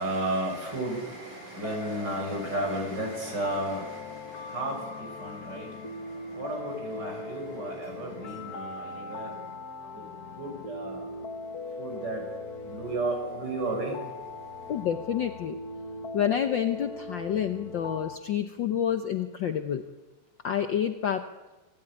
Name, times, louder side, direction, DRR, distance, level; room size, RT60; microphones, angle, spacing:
voice 1, 0.0-5.8 6.3-9.3 9.9-10.0 10.4-11.1 11.8-12.2 12.6-14.0, right 1 dB, 30° right, 3 dB, 6.7 m, -33 dB
sound 1, 1.6-18.2, left 2 dB, 50° left, 1.2 m, -40 dB
voice 2, 14.7-15.6 16.1-19.8 20.4-21.3, left 9 dB, 75° left, 8 dB, 1.0 m, -28 dB
25.5 x 17.0 x 9.8 m, 1.2 s
omnidirectional pair, 3.4 m